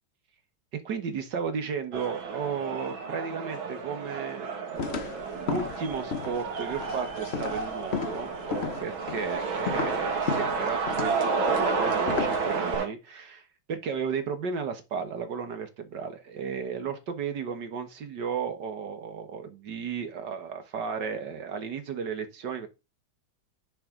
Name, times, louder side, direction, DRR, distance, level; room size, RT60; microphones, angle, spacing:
voice 1, 0.7-22.7, right 6 dB, 60° right, 1.9 m, -34 dB
sound 1, 1.9-12.9, right 5 dB, 75° right, 2.5 m, -31 dB
sound 2, 4.8-12.7, left 6 dB, 55° left, 0.7 m, -35 dB
10.5 x 5.7 x 3.8 m
omnidirectional pair, 2.2 m